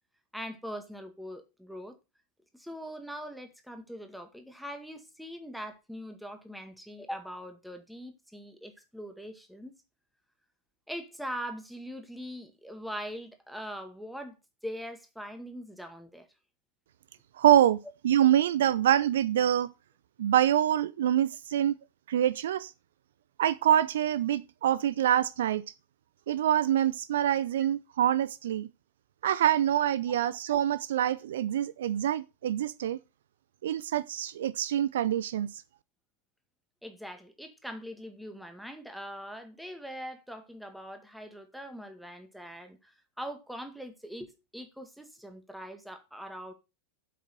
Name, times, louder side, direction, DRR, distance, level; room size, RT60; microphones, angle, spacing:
voice 1, 0.3-2.0 2.5-9.7 10.9-14.4 14.6-16.3 36.8-46.5, equal, ahead, 2.0 m, -42 dB
voice 2, 17.3-19.7 20.2-21.8 22.1-22.7 23.4-25.6 26.3-28.7 29.2-33.0 33.6-35.6, right 11 dB, 60° right, 0.6 m, -25 dB
8.0 x 7.7 x 6.6 m
figure-of-eight pair, 90°, 0 cm